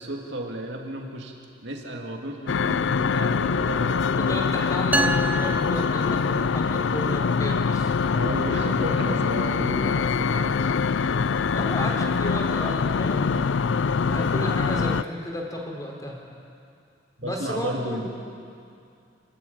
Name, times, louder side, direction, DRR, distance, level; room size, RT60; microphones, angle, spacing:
voice 1, 0.0-1.3 1.6-4.5 6.2-6.6 8.1-10.7 17.2-18.1, right 1 dB, 70° right, 1 dB, 2.5 m, -33 dB
sound 1, 2.5-15.0, left 5 dB, 80° left, 0.5 m, -24 dB
voice 2, 4.1-7.9 8.8-9.1 10.3-10.6 11.5-13.5 14.0-16.2 17.2-18.0, left 1 dB, 20° left, -1 dB, 4.0 m, -33 dB
sound 2, 4.9-6.7, right 2 dB, 10° right, 0.5 m, -28 dB
28.5 x 13.5 x 8.8 m, 2.4 s
head